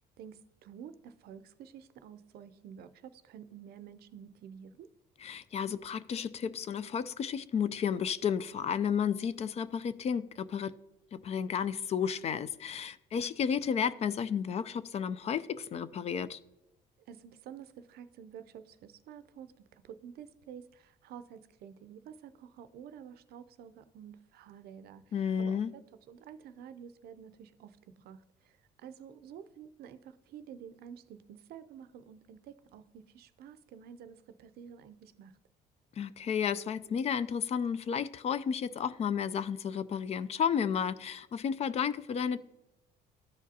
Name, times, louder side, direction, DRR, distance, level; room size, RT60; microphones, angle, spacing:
voice 1, 0.2-4.9 17.1-25.8 26.1-35.3, right 8 dB, 65° right, 12 dB, 0.5 m, -50 dB
voice 2, 5.2-10.7 11.1-16.4 25.1-25.7 36.0-42.4, left 7 dB, 40° left, 16 dB, 0.3 m, -32 dB
13.5 x 5.0 x 2.7 m, 0.97 s
cardioid pair, 110°, 17 cm